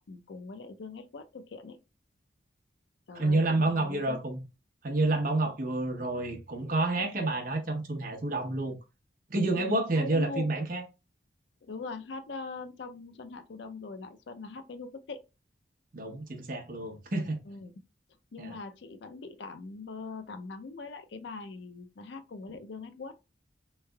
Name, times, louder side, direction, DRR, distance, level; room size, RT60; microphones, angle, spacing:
voice 1, 0.0-1.8 3.1-4.2 9.5-10.5 11.6-15.2 17.5-17.7 18.3-23.1, left 4 dB, 65° left, 0.5 m, -42 dB
voice 2, 3.1-4.4 4.8-8.8 9.3-10.8 15.9-17.4 18.4-18.6, right 2 dB, 45° right, 0.8 m, -29 dB
3.6 x 3.2 x 2.2 m
head